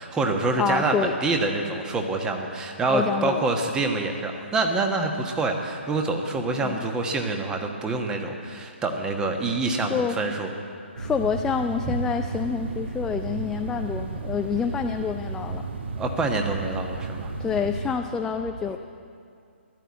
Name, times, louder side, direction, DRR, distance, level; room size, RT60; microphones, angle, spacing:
voice 1, 0.0-10.5 16.0-17.3, right 3 dB, 10° right, 3 dB, 1.3 m, -26 dB
voice 2, 0.6-1.2 2.9-3.4 6.6-6.8 9.9-10.2 11.0-15.6 17.4-18.8, left 6 dB, 10° left, 5 dB, 0.4 m, -27 dB
sound 1, 11.0-17.9, right 3 dB, 60° right, 1.5 m, -33 dB
14.0 x 11.5 x 8.5 m, 2.4 s
figure-of-eight pair, 140°, 7 cm